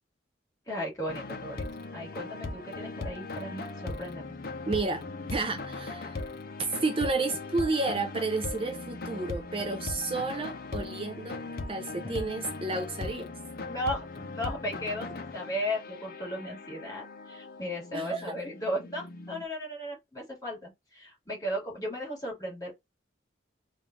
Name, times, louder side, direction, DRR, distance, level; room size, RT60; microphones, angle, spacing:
voice 1, 0.7-1.6 1.9-4.3 13.6-14.1 14.3-22.7, equal, 20° left, 1.9 m, -35 dB
sound 1, 1.1-19.5, left 3 dB, 50° left, 0.6 m, -39 dB
voice 2, 4.6-5.0 5.3-6.2 6.6-13.3 17.9-18.3, right 3 dB, 30° right, 0.4 m, -31 dB
3.5 x 2.4 x 3.8 m
head